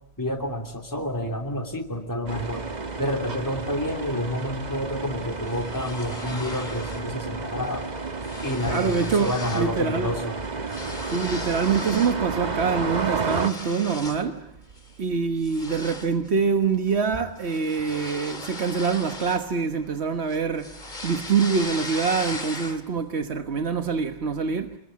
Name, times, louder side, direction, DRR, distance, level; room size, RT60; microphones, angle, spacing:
voice 1, 0.2-2.6 3.0-7.9 8.4-10.4, left 1 dB, 20° left, 3.1 m, -29 dB
sound 1, 2.3-13.5, right 4 dB, 45° right, 1.5 m, -32 dB
sound 2, 5.5-7.1 7.5-7.7 8.0-9.8 10.1-12.2 12.7-14.3 14.8-15.0 15.4-20.0 20.3-23.0, left 2 dB, 45° left, 2.3 m, -38 dB
voice 2, 8.6-10.1 11.1-14.4 15.0-20.7 21.0-24.8, right 5 dB, 85° right, 1.5 m, -25 dB
27.0 x 22.0 x 9.7 m
omnidirectional pair, 1.1 m